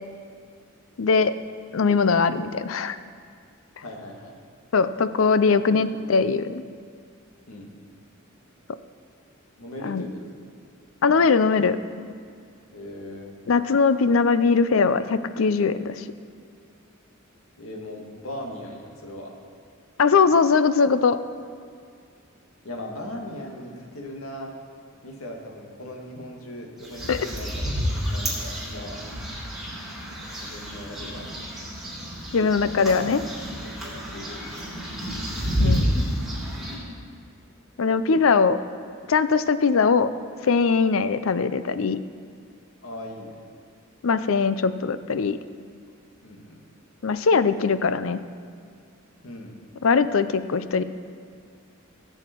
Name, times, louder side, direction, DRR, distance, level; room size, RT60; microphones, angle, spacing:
voice 1, 1.0-1.3 1.7-3.0 4.7-6.6 9.8-10.1 11.0-11.8 13.5-16.0 20.0-21.2 27.1-27.3 32.3-33.2 35.6-35.9 37.8-38.6 39.1-40.1 40.4-42.0 44.0-45.4 47.0-48.2 49.8-50.8, left 5 dB, 70° left, 13 dB, 0.5 m, -21 dB
voice 2, 3.8-4.4 5.7-5.8 7.5-7.7 9.6-10.3 12.7-13.3 17.6-19.3 22.6-24.5 25.0-29.0 30.4-31.2 32.8-33.0 33.6-34.9 42.8-43.4 46.2-46.6 49.2-49.5, left 1 dB, 90° left, 0 dB, 2.0 m, -39 dB
sound 1, 26.8-36.7, equal, ahead, 3.8 m, -29 dB
17.5 x 7.9 x 4.6 m, 2.2 s
head